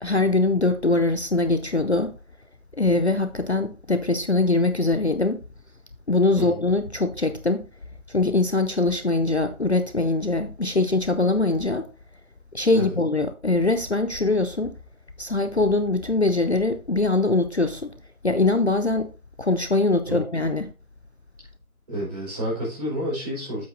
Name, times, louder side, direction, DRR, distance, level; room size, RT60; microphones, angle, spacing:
voice 1, 0.0-2.1 2.8-5.4 6.1-7.7 8.1-11.9 12.5-14.7 15.2-17.9 18.2-19.1 19.4-20.7, left 2 dB, 50° left, 0.5 m, -22 dB
voice 2, 21.9-23.6, equal, 25° right, 4.3 m, -29 dB
8.1 x 7.9 x 2.5 m
figure-of-eight pair, 170°, 44 cm